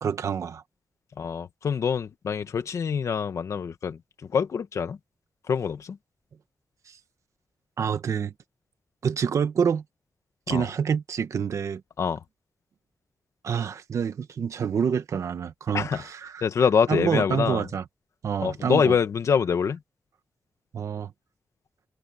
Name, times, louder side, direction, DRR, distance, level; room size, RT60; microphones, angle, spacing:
voice 1, 0.0-0.6 6.9-7.0 7.8-8.3 9.0-9.8 10.5-11.8 13.4-16.3 16.9-17.8 18.2-18.9 20.7-21.1, right 7 dB, 65° right, 1.5 m, -27 dB
voice 2, 1.2-5.0 5.5-6.0 10.5-10.7 12.0-12.2 15.7-16.0 16.4-17.7 18.4-19.8, left 6 dB, 60° left, 1.5 m, -25 dB
wide cardioid pair, 145°, 6 cm